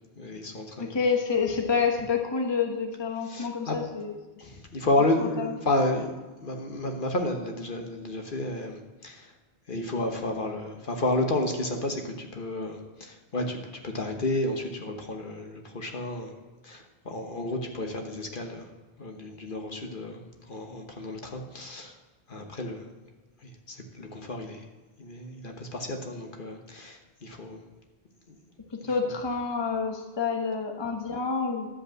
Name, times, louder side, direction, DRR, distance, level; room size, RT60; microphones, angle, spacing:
voice 1, 0.2-0.9 3.3-3.8 4.4-9.3 9.7-18.7 19.0-22.0 22.3-22.9 23.4-24.7 25.0-27.6 28.3-28.4, left 2 dB, 50° left, 3 dB, 1.3 m, -31 dB
voice 2, 0.8-4.1 5.4-5.5 28.7-31.7, left 5 dB, 25° left, 3 dB, 1.0 m, -28 dB
11.5 x 5.4 x 7.3 m, 1.2 s
omnidirectional pair, 1.1 m